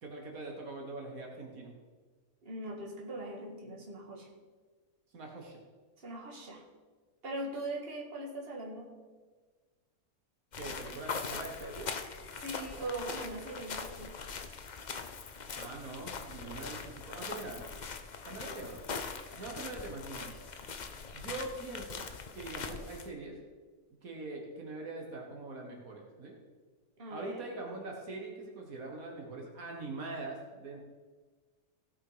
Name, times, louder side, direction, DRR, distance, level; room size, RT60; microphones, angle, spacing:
voice 1, 0.0-1.7 5.1-5.6 10.6-11.9 15.5-17.7 18.3-18.8 19.4-20.4 21.1-22.1 22.3-23.4 24.0-26.4 27.1-30.8, right 2 dB, 70° right, 1 dB, 1.9 m, -43 dB
voice 2, 2.4-4.3 6.0-6.6 7.2-8.9 12.3-14.1 27.0-27.4, right 1 dB, 40° right, -1 dB, 2.0 m, -40 dB
sound 1, 10.5-23.1, left 5 dB, 45° left, 0.6 m, -42 dB
16.5 x 6.0 x 5.0 m, 1.4 s
omnidirectional pair, 1.5 m